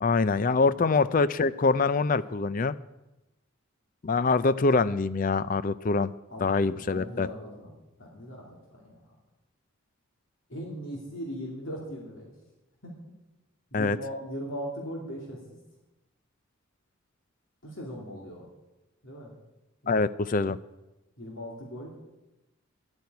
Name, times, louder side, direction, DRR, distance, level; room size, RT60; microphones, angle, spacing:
voice 1, 0.0-2.8 4.0-6.1 6.4-7.3 13.7-14.0 19.9-20.6, left 4 dB, 40° left, 16 dB, 0.4 m, -24 dB
voice 2, 6.3-7.7 8.0-9.0 10.5-12.3 12.8-12.9 13.7-15.6 17.6-18.5 19.0-19.3 19.8-20.0 21.2-21.9, equal, 60° left, -2 dB, 2.7 m, -39 dB
10.5 x 9.1 x 9.5 m, 1.0 s
head